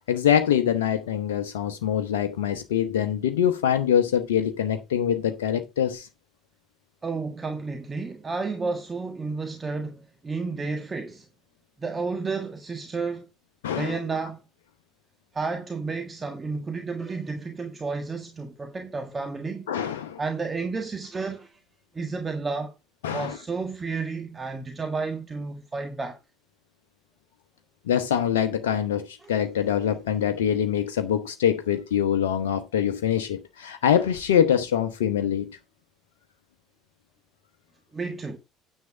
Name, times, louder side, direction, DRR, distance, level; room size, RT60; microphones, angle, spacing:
voice 1, 0.1-6.1 13.6-14.0 19.7-20.2 23.0-23.4 27.9-35.6, left 9 dB, 70° left, 0.9 m, -24 dB
voice 2, 7.0-11.3 11.8-13.3 13.7-14.4 15.3-19.7 20.2-21.6 21.9-22.7 23.1-26.2 29.2-29.4 37.9-38.4, right 4 dB, 25° right, 1.6 m, -31 dB
9.5 x 8.2 x 3.7 m
figure-of-eight pair, 60°, 0 cm